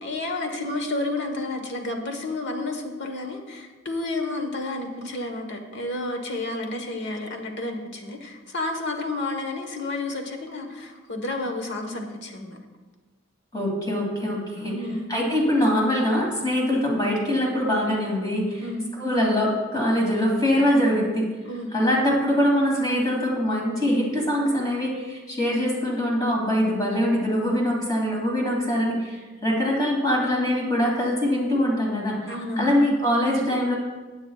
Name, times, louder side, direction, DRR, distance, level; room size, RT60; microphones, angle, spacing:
voice 1, 0.0-12.6 14.5-15.1 18.6-18.9 21.4-21.7 32.3-32.7, left 2 dB, 60° left, 3 dB, 1.4 m, -31 dB
voice 2, 13.5-14.8 15.1-18.6 19.0-21.2 21.7-32.3 32.6-33.7, equal, 20° left, -2 dB, 2.8 m, -23 dB
15.5 x 8.7 x 2.4 m, 1.3 s
head